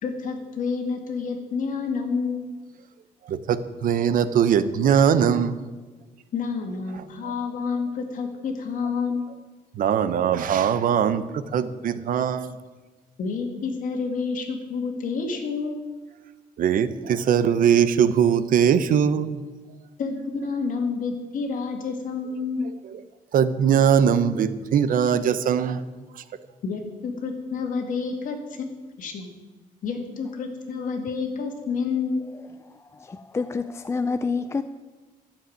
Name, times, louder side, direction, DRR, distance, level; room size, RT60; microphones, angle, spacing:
voice 1, 0.0-2.5 6.3-9.3 13.2-15.9 20.0-22.7 26.6-28.7 29.0-29.3 29.8-32.3, left 5 dB, 60° left, 4 dB, 2.2 m, -29 dB
voice 2, 3.3-5.7 9.7-12.6 16.6-19.4 23.3-25.8 26.2-26.3, right 8 dB, 65° right, 13 dB, 0.8 m, -21 dB
voice 3, 32.7-34.6, left 4 dB, 20° left, 11 dB, 0.3 m, -28 dB
12.5 x 7.2 x 9.4 m, 1.3 s
cardioid pair, 165°, 15 cm